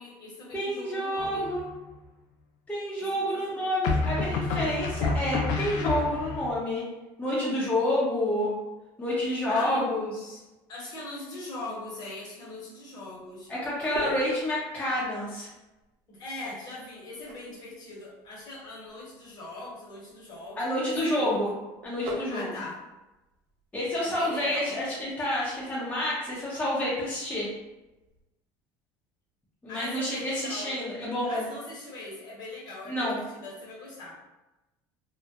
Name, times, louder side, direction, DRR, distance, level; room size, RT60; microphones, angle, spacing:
voice 1, 0.0-1.5 3.0-3.7 9.5-9.9 10.7-13.5 16.1-21.4 22.3-22.8 24.0-24.7 29.7-30.7 31.2-34.1, left 2 dB, 40° left, -5 dB, 0.9 m, -41 dB
voice 2, 0.5-1.6 2.7-6.8 7.2-8.6 9.0-10.4 13.5-15.5 20.6-21.5 21.8-22.5 23.7-27.5 29.6-31.4 32.9-33.2, left 1 dB, 15° left, -7 dB, 0.6 m, -29 dB
sound 1, 1.2-1.8 3.8-6.5, left 3 dB, 70° left, 0.4 m, -29 dB
sound 2, 13.0-28.2, right 2 dB, 75° right, 0.6 m, -47 dB
2.3 x 2.0 x 2.7 m, 1.0 s
supercardioid pair, 115°, 10 cm